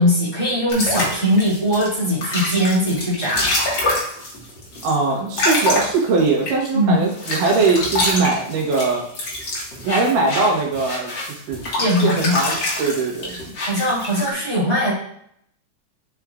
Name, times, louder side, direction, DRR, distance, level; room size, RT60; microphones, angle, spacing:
voice 1, 0.0-3.5 6.7-7.0 11.8-12.3 13.6-14.9, equal, 10° left, -8 dB, 2.2 m, -20 dB
sound 1, 0.7-6.7 7.1-14.3, left 1 dB, 40° left, 2.0 m, -25 dB
voice 2, 4.8-9.0 9.8-11.1 11.5-11.6 12.0-13.4, right 3 dB, 85° right, -1 dB, 3.0 m, -20 dB
7.9 x 6.5 x 2.5 m, 0.69 s
omnidirectional pair, 3.7 m